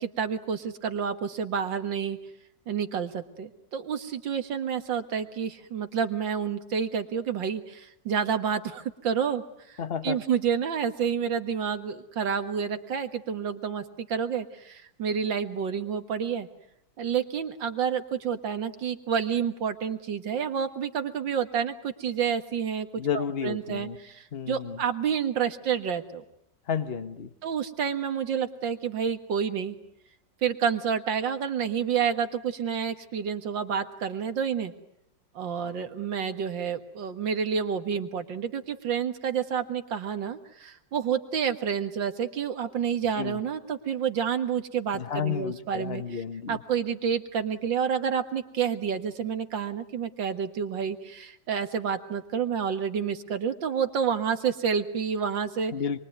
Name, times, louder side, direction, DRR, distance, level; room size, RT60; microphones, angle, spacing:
voice 1, 0.0-2.2 2.7-16.5 17.0-22.9 23.1-26.2 27.4-29.8 30.4-34.7 35.3-55.7, right 7 dB, 80° right, 8 dB, 2.4 m, -29 dB
voice 2, 9.8-10.2 23.0-24.0 24.3-24.8 26.7-27.3 43.2-43.4 44.9-46.6 55.7-56.0, left 7 dB, 35° left, 11 dB, 1.4 m, -31 dB
27.0 x 23.5 x 9.4 m, 0.77 s
omnidirectional pair, 2.0 m